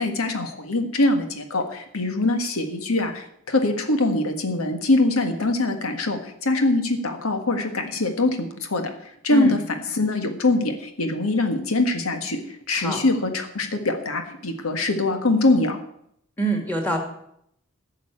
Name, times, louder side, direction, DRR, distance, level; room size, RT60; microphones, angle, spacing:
voice 1, 0.0-9.6 9.9-15.8, left 2 dB, 85° left, 6 dB, 1.7 m, -23 dB
voice 2, 12.7-13.0 16.4-17.0, right 1 dB, 10° left, 2 dB, 2.2 m, -25 dB
11.5 x 6.7 x 8.5 m, 0.72 s
head